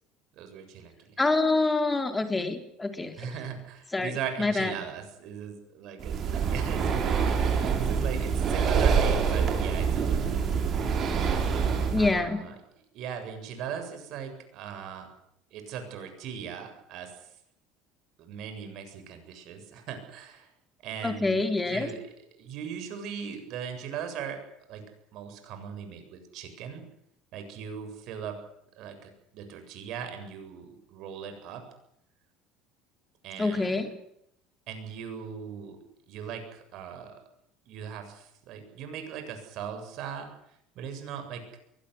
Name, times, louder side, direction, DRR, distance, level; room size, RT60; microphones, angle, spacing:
voice 1, 0.3-1.2 3.2-7.4 7.7-10.8 12.0-12.6 12.9-15.1 15.5-17.4 18.2-20.5 20.8-24.4 24.7-24.9 25.1-26.8 27.3-28.4 28.7-31.6 33.2-33.8 34.7-35.8 36.1-37.2 37.7-41.4, right 7 dB, 65° right, 7 dB, 7.6 m, -39 dB
voice 2, 1.2-3.1 3.9-4.1 4.4-4.7 11.9-12.4 21.0-21.9 33.4-33.9, left 3 dB, 15° left, 6 dB, 4.1 m, -26 dB
Breathing, 6.0-12.1, right 6 dB, 45° right, 6.2 m, -26 dB
23.0 x 18.0 x 9.7 m, 0.75 s
supercardioid pair, 95°, 0 cm